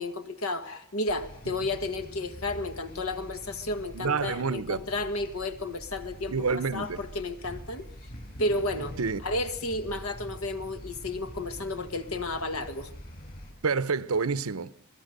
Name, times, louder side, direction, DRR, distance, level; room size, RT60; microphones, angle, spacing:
voice 1, 0.0-6.4 6.7-7.9 8.4-9.0 9.2-12.9, left 2 dB, 80° left, 1.7 m, -32 dB
sound 1, 1.1-13.5, equal, 45° left, 6.5 m, -45 dB
voice 2, 3.9-4.8 6.3-7.0 9.0-9.2 13.6-14.7, right 4 dB, 85° right, 0.8 m, -28 dB
27.5 x 19.5 x 6.7 m
head